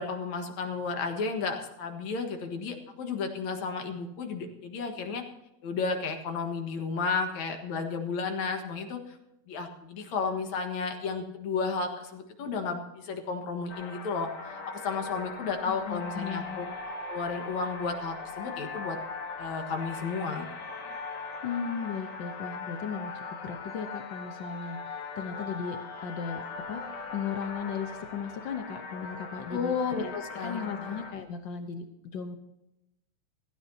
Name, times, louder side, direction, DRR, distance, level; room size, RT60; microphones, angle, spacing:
voice 1, 0.0-5.2 5.6-9.2 9.5-16.7 17.1-19.0 19.4-20.5 29.5-31.0, left 4 dB, 70° left, 4 dB, 2.8 m, -33 dB
sound 1, 13.7-31.1, left 4 dB, 50° left, 1.4 m, -40 dB
voice 2, 15.6-16.6 21.4-26.4 26.7-30.1 30.4-31.8 32.1-32.4, left 6 dB, 90° left, 7 dB, 1.0 m, -36 dB
16.5 x 16.0 x 2.8 m, 0.87 s
omnidirectional pair, 3.5 m